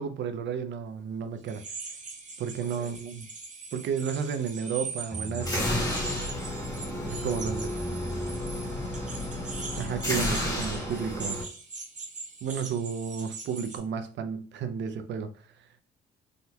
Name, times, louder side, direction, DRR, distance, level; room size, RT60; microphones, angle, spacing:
voice 1, 0.0-1.6 2.4-3.3 3.7-5.7 7.2-7.7 9.8-11.4 12.4-15.3, right 7 dB, 65° right, 0.5 m, -32 dB
sound 1, 1.4-13.8, right 4 dB, 40° right, 0.8 m, -41 dB
voice 2, 2.6-2.9 6.4-9.2, left 4 dB, 80° left, 1.2 m, -50 dB
sound 2, 5.1-10.4, left 2 dB, 5° right, 0.7 m, -39 dB
sound 3, 5.4-11.4, left 1 dB, 20° left, 1.3 m, -32 dB
3.5 x 2.8 x 2.2 m
cardioid pair, 90°, 20 cm